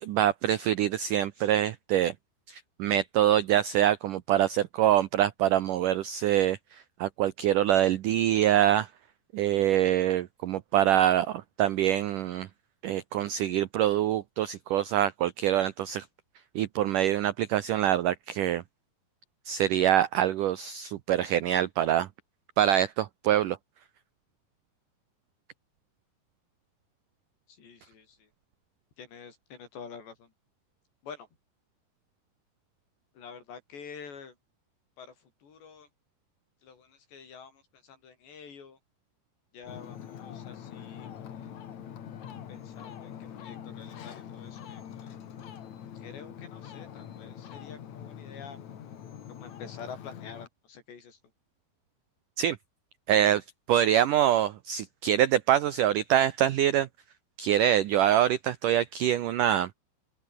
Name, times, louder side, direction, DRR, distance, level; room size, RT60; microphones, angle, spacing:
voice 1, 0.0-2.1 2.5-8.9 9.3-12.5 12.8-16.1 16.6-18.6 19.5-22.1 22.6-23.6 52.4-52.6 53.1-56.9 57.4-59.7, right 11 dB, 85° right, 1.8 m, -25 dB
voice 2, 27.6-28.2 29.0-30.3 31.0-31.3 33.2-34.3 35.0-35.1 35.4-35.9 36.6-38.8 39.5-41.5 42.5-43.1 43.4-45.1 46.0-48.6 49.3-51.2, left 6 dB, 75° left, 7.3 m, -47 dB
Ocean, 39.6-50.5, left 9 dB, 50° left, 2.7 m, -44 dB
open air
omnidirectional pair, 5.0 m